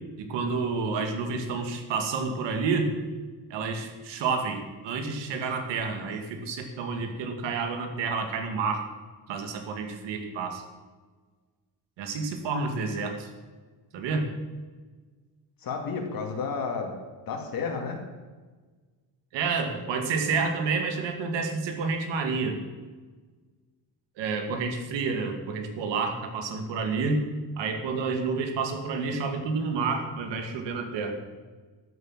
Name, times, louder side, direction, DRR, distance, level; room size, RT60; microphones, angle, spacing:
voice 1, 0.2-2.9 3.5-8.8 9.3-10.6 12.0-13.3 13.9-14.3 19.3-22.6 24.2-27.2 27.6-31.2, right 4 dB, 85° right, 5 dB, 2.4 m, -29 dB
voice 2, 15.6-16.9 17.2-18.0, left 5 dB, 55° left, 2 dB, 2.5 m, -31 dB
13.0 x 8.0 x 7.4 m, 1.4 s
cardioid pair, 135°, 42 cm